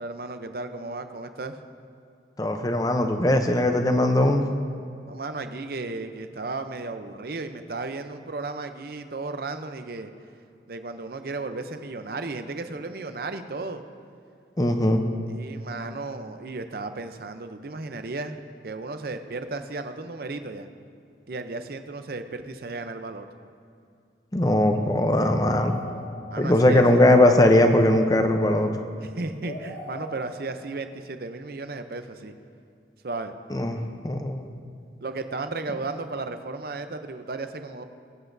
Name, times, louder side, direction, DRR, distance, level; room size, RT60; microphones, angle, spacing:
voice 1, 0.0-1.6 5.1-10.1 10.7-13.8 15.3-18.4 18.6-20.7 21.3-23.3 26.3-27.0 29.0-32.3 33.0-33.3 35.0-37.8, right 3 dB, 55° right, 8 dB, 0.6 m, -34 dB
voice 2, 2.4-4.5 14.6-15.0 24.3-25.7 26.4-28.7 33.5-34.5, left 1 dB, 20° left, 5 dB, 0.6 m, -20 dB
sound 1, 25.3-26.5 27.0-28.7 29.3-30.6 31.9-32.1, left 2 dB, 85° left, 1.9 m, -38 dB
21.5 x 8.0 x 2.7 m, 2.5 s
head